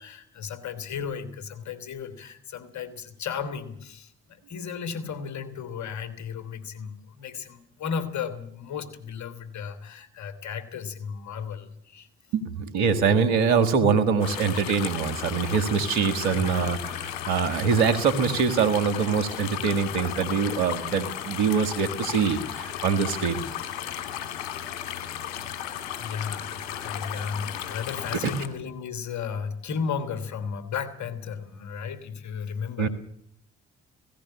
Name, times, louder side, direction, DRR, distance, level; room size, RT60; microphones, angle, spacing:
voice 1, 0.0-12.1 16.1-16.5 25.2-25.4 26.0-32.9, left 6 dB, 60° left, 13 dB, 3.2 m, -34 dB
voice 2, 12.3-23.4 28.2-28.3 32.8-32.9, right 6 dB, 85° right, 9 dB, 1.9 m, -24 dB
sound 1, 14.2-28.5, left 10 dB, 80° left, 2.4 m, -35 dB
17.0 x 16.5 x 9.8 m, 0.69 s
hypercardioid pair, 50°, 32 cm